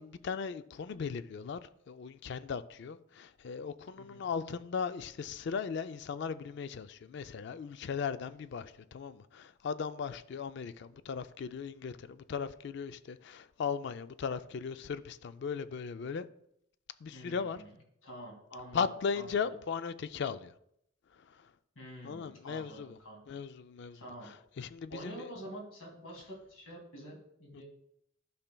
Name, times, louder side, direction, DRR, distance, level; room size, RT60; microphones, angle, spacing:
voice 1, 0.0-16.3 17.0-17.6 18.7-20.5 21.4-21.5 22.0-23.0 23.3-25.3, left 6 dB, 55° left, 0.3 m, -37 dB
voice 2, 17.1-17.7 18.0-18.8 19.1-19.6 21.8-23.4 23.9-24.3 24.9-27.6, right 1 dB, 80° left, 2.3 m, -47 dB
12.0 x 5.7 x 2.2 m
head